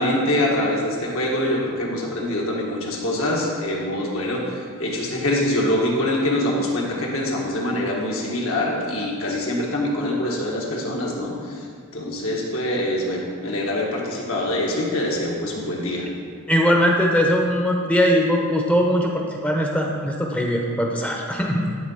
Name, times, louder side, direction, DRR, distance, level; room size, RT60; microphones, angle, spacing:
voice 1, 0.0-11.6 11.9-16.1, left 1 dB, 70° left, -2 dB, 1.6 m, -24 dB
voice 2, 16.5-21.7, equal, 5° left, 0 dB, 0.7 m, -20 dB
11.5 x 4.0 x 5.5 m, 2.2 s
head